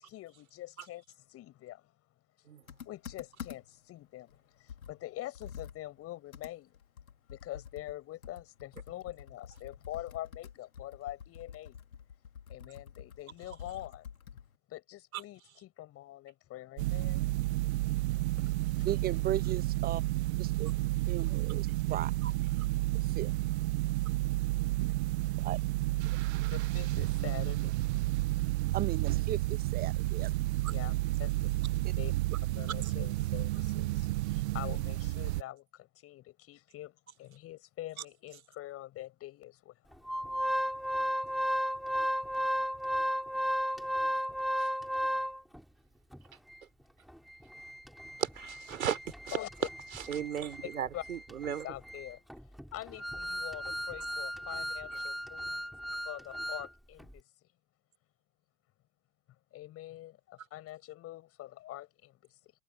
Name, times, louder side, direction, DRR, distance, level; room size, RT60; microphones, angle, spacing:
voice 1, 0.0-1.9 2.4-2.5 2.8-6.8 7.3-11.8 12.5-14.1 14.7-17.3 18.4-19.0 24.9-25.0 26.4-27.7 30.2-31.6 32.0-32.1 32.5-40.1 42.4-42.6 49.3-49.7 50.6-51.0 51.4-52.2 52.7-55.7 56.0-57.5 59.5-62.5, left 15 dB, 35° left, 6.7 m, -45 dB
Computer keyboard, 2.7-3.9 4.3-4.4 4.7-14.6, left 8 dB, 85° left, 3.4 m, -48 dB
sound 1, 16.8-35.4, right 19 dB, 55° right, 1.0 m, -31 dB
voice 2, 18.8-20.0 20.4-20.7 21.1-22.1 23.1-23.3 25.4-25.6 28.7-30.3, right 12 dB, 20° right, 1.1 m, -36 dB
Organ, 40.1-45.6 46.1-46.2 46.5-46.6 47.1-56.7 57.0-57.1, equal, ahead, 3.5 m, -35 dB
voice 3, 48.2-49.0 49.3-49.4 50.1-51.6, right 9 dB, 80° right, 3.6 m, -35 dB
hypercardioid pair, 110°, 41 cm